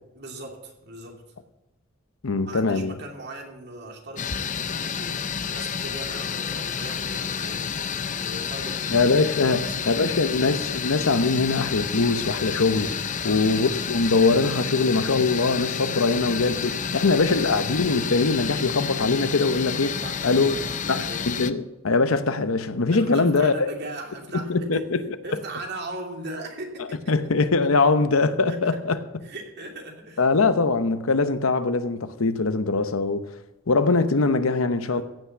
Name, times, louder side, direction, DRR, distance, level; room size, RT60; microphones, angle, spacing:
voice 1, 0.1-1.2 2.4-9.1 9.4-10.2 13.1-13.6 19.9-21.3 22.9-24.9 25.2-27.2 28.5-28.8 29.2-30.2 34.8-35.0, right 1 dB, 55° right, 2.7 m, -39 dB
voice 2, 2.2-2.9 8.9-9.6 9.9-20.0 20.2-20.5 20.9-23.5 24.3-25.0 27.1-29.0 30.2-33.3 33.7-35.0, left 3 dB, 85° left, 0.9 m, -22 dB
sound 1, 4.2-21.5, left 7 dB, 40° left, 0.6 m, -30 dB
15.5 x 6.0 x 8.3 m
head